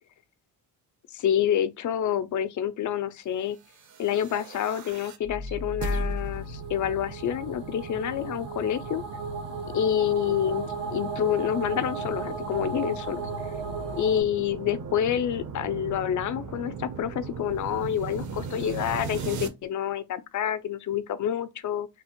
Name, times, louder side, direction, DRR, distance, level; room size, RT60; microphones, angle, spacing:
voice 1, 1.1-3.6 4.0-9.0 9.7-13.2 13.9-21.9, left 10 dB, 45° left, 0.4 m, -28 dB
sound 1, 3.7-19.5, right 3 dB, 40° right, 0.6 m, -37 dB
sound 2, 5.7-14.2, right 4 dB, 85° right, 1.3 m, -36 dB
3.3 x 2.0 x 2.8 m
cardioid pair, 85°, 43 cm